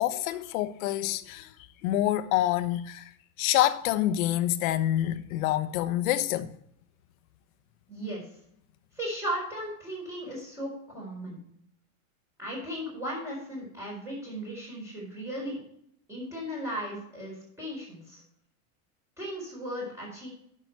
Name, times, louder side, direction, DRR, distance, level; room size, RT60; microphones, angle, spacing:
voice 1, 0.0-1.5 1.8-3.0 3.4-6.5, left 13 dB, 75° left, 1.0 m, -27 dB
voice 2, 7.9-8.2 8.9-11.4 12.4-15.6 16.1-18.2 19.2-20.3, equal, 5° right, 4.5 m, -36 dB
10.5 x 6.0 x 4.5 m
supercardioid pair, 140°, 43 cm